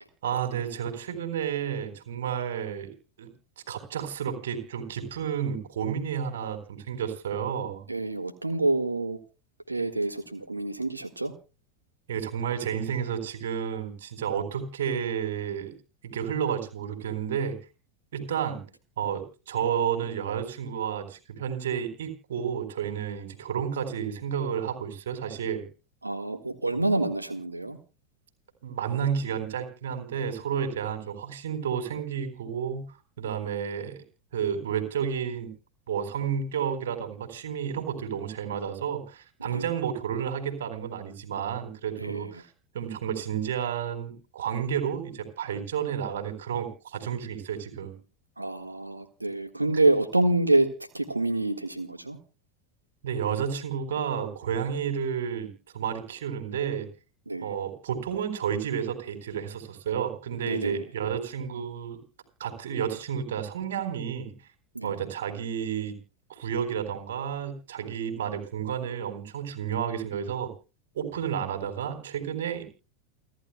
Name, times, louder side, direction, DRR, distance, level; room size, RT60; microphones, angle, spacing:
voice 1, 0.2-3.3 3.7-7.8 12.1-15.7 16.0-17.6 18.1-18.6 19.0-25.6 28.6-32.9 33.2-34.0 34.3-35.5 35.9-48.0 53.0-56.9 57.4-62.0 62.4-64.3 64.8-66.0 66.3-70.5 70.9-72.6, right 8 dB, 65° right, 7 dB, 4.1 m, -31 dB
voice 2, 7.9-9.2 9.7-11.3 26.0-27.8 39.4-39.7 41.9-42.4 48.4-50.7 50.9-52.2 57.3-57.5 60.4-60.8 64.7-65.0, right 2 dB, 85° right, 6 dB, 1.6 m, -27 dB
29.0 x 12.0 x 2.2 m, 0.33 s
figure-of-eight pair, 85°, 0 cm